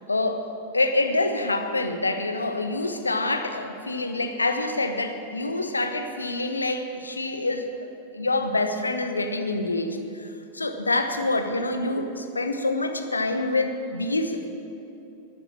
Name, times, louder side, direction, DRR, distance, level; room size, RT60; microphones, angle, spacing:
voice 1, 0.1-0.4 0.7-7.7 8.1-10.3 10.5-14.5, left 2 dB, 80° left, 7 dB, 0.9 m, -26 dB
12.0 x 8.1 x 8.7 m, 2.8 s
figure-of-eight pair, 90°, 0 cm